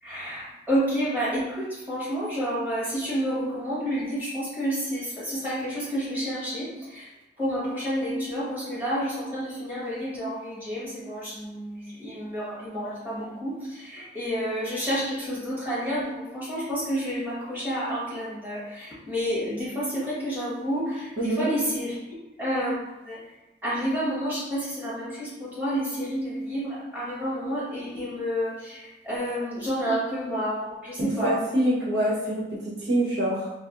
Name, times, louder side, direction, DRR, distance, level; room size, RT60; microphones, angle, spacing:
voice 1, 0.0-7.1 7.4-22.8 23.0-23.2 23.6-31.4, equal, 10° right, -10 dB, 1.3 m, -30 dB
voice 2, 21.2-21.5 31.0-32.4 32.8-33.5, right 1 dB, 70° right, -5 dB, 1.0 m, -25 dB
4.2 x 2.0 x 2.6 m, 0.99 s
head